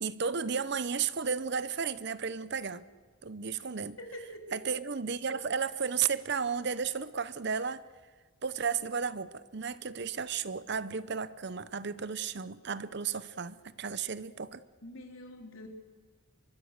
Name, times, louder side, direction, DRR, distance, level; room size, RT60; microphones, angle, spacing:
voice 1, 0.0-2.8 3.2-4.0 4.5-7.8 8.4-14.6, right 6 dB, 55° right, 16 dB, 0.8 m, -33 dB
voice 2, 4.0-4.6 14.8-15.7, left 1 dB, 75° left, 4 dB, 3.4 m, -45 dB
24.0 x 23.5 x 6.7 m, 1.4 s
head